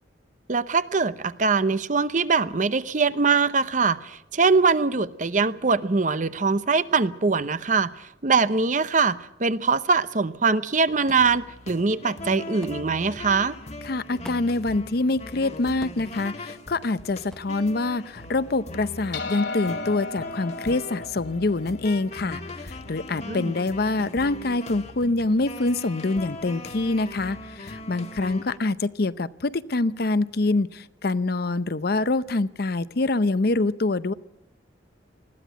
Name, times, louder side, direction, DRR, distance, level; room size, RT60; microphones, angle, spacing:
voice 1, 0.5-13.6 23.3-23.5, right 4 dB, 45° right, 14 dB, 0.8 m, -22 dB
sound 1, 10.9-28.6, left 2 dB, 35° left, 1.5 m, -40 dB
sound 2, 11.1-11.3 12.6-12.8 14.2-14.6 15.8-16.1 17.3-17.5, equal, 5° left, 0.7 m, -43 dB
voice 2, 13.8-34.1, left 2 dB, 55° left, 15 dB, 0.7 m, -25 dB
sound 3, 19.1-23.8, left 3 dB, 80° left, 2.8 m, -36 dB
20.5 x 15.0 x 9.2 m, 0.84 s
head